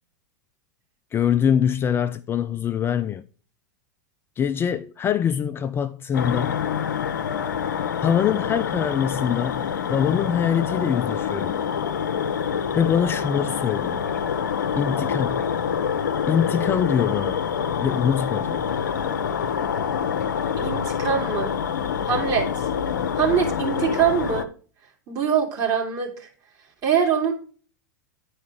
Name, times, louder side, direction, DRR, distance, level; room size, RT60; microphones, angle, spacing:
voice 1, 1.1-3.2 4.4-6.6 8.0-11.6 12.7-14.0 14.8-15.5 16.3-17.4 17.8-18.7, left 8 dB, 25° left, 0.3 m, -24 dB
sound 1, 6.1-24.4, left 7 dB, 80° left, 0.7 m, -26 dB
voice 2, 20.6-21.6 22.0-22.5 23.1-24.5 25.1-26.3 26.8-27.3, right 7 dB, 35° right, 2.9 m, -23 dB
10.0 x 4.7 x 4.8 m
hypercardioid pair, 95°, 10 cm